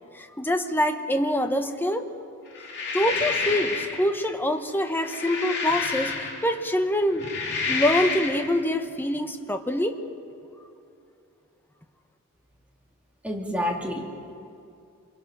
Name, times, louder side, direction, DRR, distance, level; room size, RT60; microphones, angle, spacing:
voice 1, 0.1-2.1 2.9-6.2 6.4-7.3 7.7-10.0, left 1 dB, 10° left, 7 dB, 1.0 m, -25 dB
sound 1, 2.6-4.0 4.9-6.6 7.1-8.5, left 4 dB, 55° left, 2.8 m, -29 dB
voice 2, 13.2-14.3, left 1 dB, 5° right, -1 dB, 2.3 m, -29 dB
26.5 x 23.5 x 6.1 m, 2.5 s
head